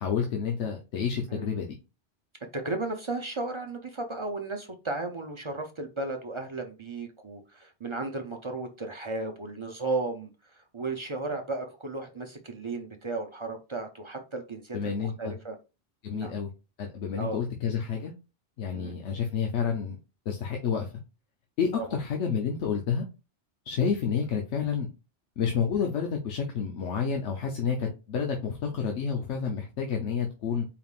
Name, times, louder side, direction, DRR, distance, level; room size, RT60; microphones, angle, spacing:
voice 1, 0.0-1.8 14.7-15.3 16.0-16.5 16.8-18.1 18.6-20.0 20.3-20.9 21.6-23.0 23.7-24.9 25.4-30.7, left 6 dB, 90° left, 2 dB, 1.1 m, -29 dB
voice 2, 2.5-15.6 16.1-16.3 17.2-17.4 18.7-18.9 21.8-21.9, right 2 dB, 40° right, 4 dB, 0.5 m, -34 dB
4.7 x 3.5 x 2.4 m, 0.29 s
omnidirectional pair, 1.2 m